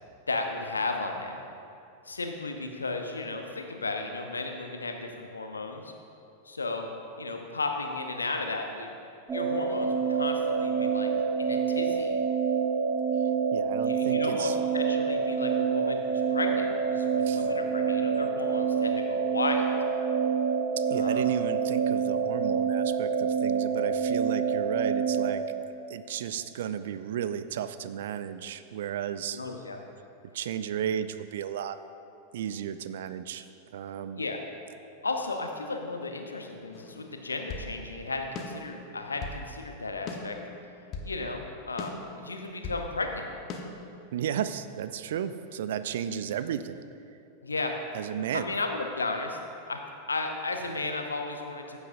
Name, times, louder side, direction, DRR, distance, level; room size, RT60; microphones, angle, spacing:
voice 1, 0.3-1.4 2.0-5.9 6.4-6.9 7.2-8.9 9.3-11.1 11.4-12.2 13.8-19.7 20.9-21.2 29.3-29.8 34.2-34.4 35.0-40.4 41.0-43.3 47.4-47.8 48.3-49.4 49.7-49.8 50.1-51.8, left 3 dB, 75° left, 4 dB, 0.8 m, -34 dB
sound 1, 9.3-25.3, right 6 dB, 20° right, 1.0 m, -27 dB
voice 2, 13.5-14.6 17.3-17.5 20.8-25.4 25.9-29.4 30.3-31.8 32.3-34.2 44.1-46.8 47.9-48.5, right 9 dB, 60° right, 12 dB, 0.4 m, -34 dB
sound 2, 36.7-37.7 38.4-39.4 40.1-41.1 41.8-42.9 43.5-43.6, left 4 dB, 35° left, 1.0 m, -39 dB
15.0 x 8.0 x 2.6 m, 2.6 s
figure-of-eight pair, 90°, 0 cm